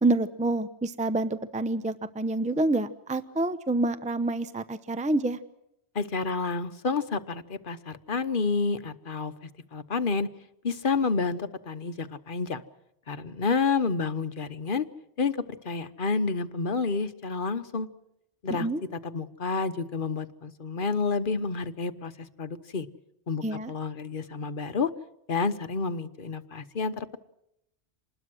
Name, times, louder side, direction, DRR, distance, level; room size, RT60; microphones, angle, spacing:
voice 1, 0.0-5.4 18.5-18.8 23.4-23.7, right 2 dB, 5° right, 11 dB, 0.7 m, -27 dB
voice 2, 5.9-9.3 9.7-10.3 10.6-12.6 13.1-14.9 15.2-17.9 18.4-18.7 19.0-22.1 22.4-22.9 23.3-24.9 25.3-27.2, left 4 dB, 50° left, 11 dB, 1.2 m, -29 dB
26.5 x 20.5 x 6.2 m, 0.82 s
omnidirectional pair, 1.2 m